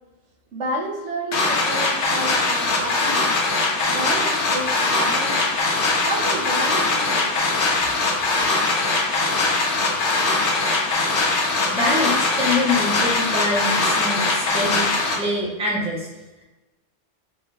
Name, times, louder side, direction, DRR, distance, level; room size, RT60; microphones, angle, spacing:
voice 1, 0.5-3.3 3.9-5.3 6.0-7.5 8.1-8.3, right 2 dB, 90° right, -2 dB, 1.2 m, -31 dB
sound 1, 1.3-15.2, left 3 dB, 70° left, 1.1 m, -21 dB
voice 2, 11.7-16.1, left 1 dB, 5° right, -3 dB, 0.7 m, -25 dB
5.0 x 2.3 x 3.2 m, 1.1 s
omnidirectional pair, 1.2 m